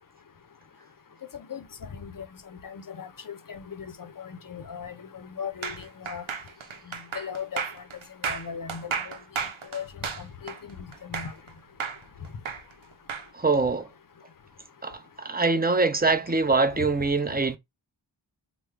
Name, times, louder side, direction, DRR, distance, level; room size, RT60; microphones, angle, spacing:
voice 1, 1.9-2.3 2.6-6.2 7.1-7.6 8.2-9.2 9.7-9.9 10.2-10.5 11.0-11.3, left 7 dB, 45° left, 0.5 m, -37 dB
sound 1, 5.6-11.5 11.8-13.3, right 6 dB, 90° right, 0.6 m, -33 dB
voice 2, 13.3-13.9 14.8-17.6, right 3 dB, 20° right, 0.5 m, -24 dB
3.4 x 2.0 x 3.2 m
wide cardioid pair, 40°, 47 cm